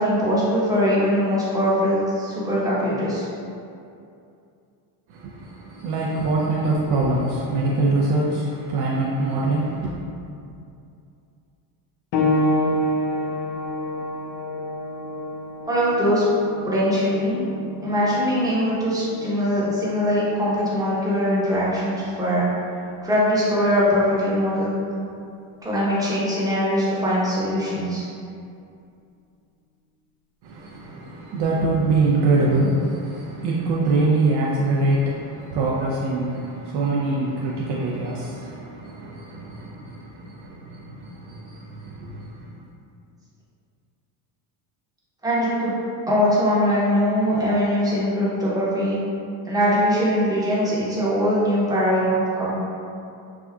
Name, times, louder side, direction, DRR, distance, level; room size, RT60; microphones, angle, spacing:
voice 1, 0.0-3.3 15.6-16.3 16.6-17.4 17.8-22.5 23.0-24.7 25.6-28.0 45.2-45.8 46.1-49.0 49.4-52.5, equal, 10° right, -8 dB, 0.8 m, -21 dB
voice 2, 5.1-9.9 30.4-42.5, right 2 dB, 55° right, -4 dB, 0.5 m, -24 dB
sound 1, 12.1-22.3 23.3-23.4 24.2-24.3, left 1 dB, 65° left, 0.6 m, -29 dB
3.5 x 2.5 x 2.2 m, 2.5 s
supercardioid pair, 95°, 48 cm